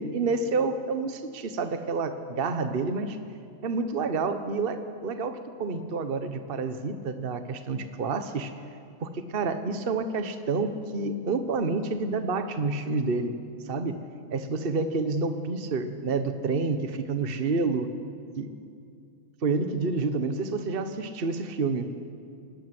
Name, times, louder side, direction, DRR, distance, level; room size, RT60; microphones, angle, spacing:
voice 1, 0.0-3.2 3.6-8.5 9.0-13.4 13.7-14.0 14.3-17.9 18.4-18.5 19.4-21.9, right 4 dB, 40° right, 8 dB, 1.3 m, -29 dB
28.0 x 20.0 x 7.8 m, 2.4 s
omnidirectional pair, 1.7 m